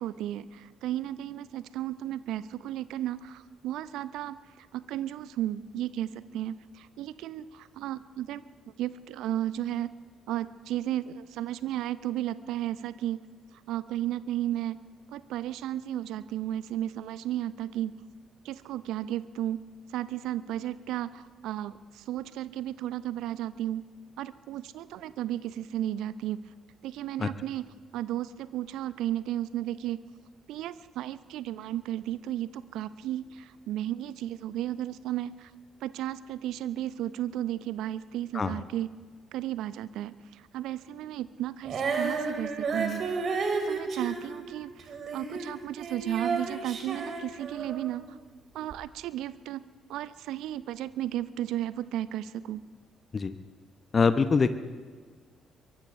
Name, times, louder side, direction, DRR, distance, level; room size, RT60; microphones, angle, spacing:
voice 1, 0.0-8.4 8.8-9.9 10.3-13.2 13.7-14.8 15.1-17.9 18.4-19.6 19.9-23.9 24.2-26.4 26.8-30.0 30.5-35.5 35.8-38.9 39.3-43.3 43.7-48.2 48.5-49.6 49.9-52.6, right 12 dB, 65° right, 17 dB, 0.5 m, -34 dB
Female singing, 41.6-48.0 48.7-48.8, right 4 dB, 50° right, 2.4 m, -32 dB
voice 2, 53.9-54.5, left 5 dB, 40° left, 11 dB, 0.7 m, -23 dB
23.5 x 23.0 x 2.5 m, 1.5 s
figure-of-eight pair, 45°, 0 cm